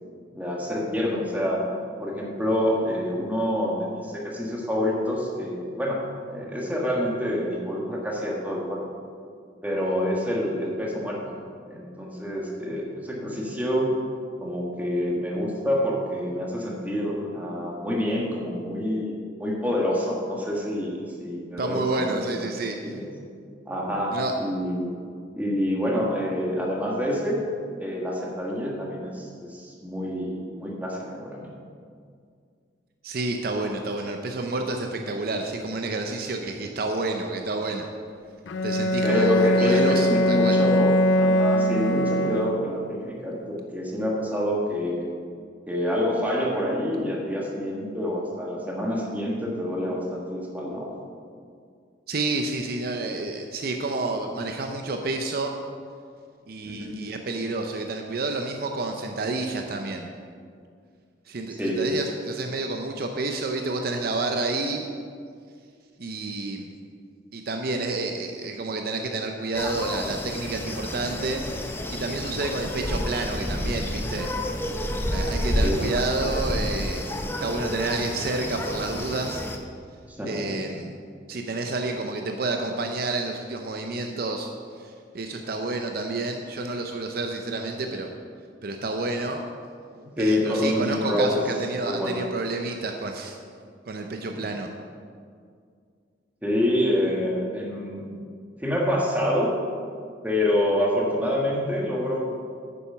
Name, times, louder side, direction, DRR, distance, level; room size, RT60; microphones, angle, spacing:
voice 1, 0.3-1.6 2.0-6.0 6.3-8.8 9.6-11.3 11.7-13.9 14.4-22.4 22.8-23.0 23.7-25.0 25.3-27.4 27.8-31.5 39.0-45.1 45.7-50.9 56.8-57.0 61.6-61.8 75.6-75.9 80.2-80.6 90.0-91.4 91.8-92.2 94.3-94.4 96.4-98.0 98.6-99.5 100.2-102.2, left 1 dB, 10° right, -3 dB, 1.5 m, -27 dB
voice 2, 21.6-22.8 24.1-24.3 33.0-37.9 38.6-40.6 52.1-55.5 56.5-60.1 61.3-64.9 66.0-66.7 67.3-71.4 71.9-74.3 75.1-77.1 77.4-79.4 80.2-80.9 81.3-84.5 84.8-88.1 88.6-89.4 90.2-93.4 93.9-94.7, right 2 dB, 55° right, 4 dB, 0.6 m, -29 dB
Bowed string instrument, 38.5-42.9, equal, 90° left, 0.5 m, -22 dB
sound 1, 69.5-79.6, left 1 dB, 10° left, 0.6 m, -30 dB
9.2 x 7.0 x 5.6 m, 2.2 s
head